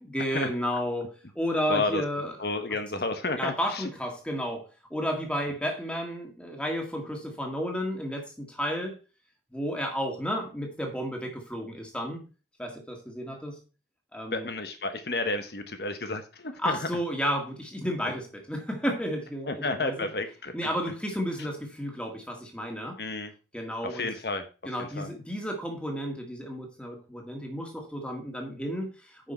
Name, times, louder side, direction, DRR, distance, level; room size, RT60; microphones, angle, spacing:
voice 1, 0.0-2.4 3.4-9.0 9.5-12.3 12.6-13.6 14.1-14.5 16.6-20.1 20.5-23.0 23.5-24.1 24.7-29.3, equal, 5° left, 2 dB, 1.8 m, -32 dB
voice 2, 1.7-2.0 2.4-3.9 14.3-16.9 19.5-20.5 23.0-23.3 23.8-24.4 24.8-25.1, left 3 dB, 65° left, 7 dB, 1.0 m, -31 dB
9.4 x 6.0 x 4.4 m, 0.34 s
head